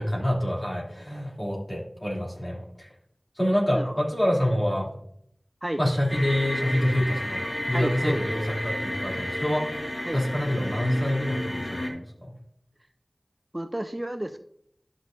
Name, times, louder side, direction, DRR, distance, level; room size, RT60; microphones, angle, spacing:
voice 1, 0.0-2.9 3.3-4.9 5.8-12.3, equal, 35° left, -4 dB, 2.8 m, -27 dB
sound 1, 6.1-11.9, left 1 dB, 60° left, 2.0 m, -32 dB
voice 2, 7.7-8.2 10.0-10.2 13.5-14.4, right 1 dB, 25° right, 8 dB, 0.4 m, -31 dB
11.5 x 6.2 x 2.6 m, 0.70 s
wide cardioid pair, 50°, 0 cm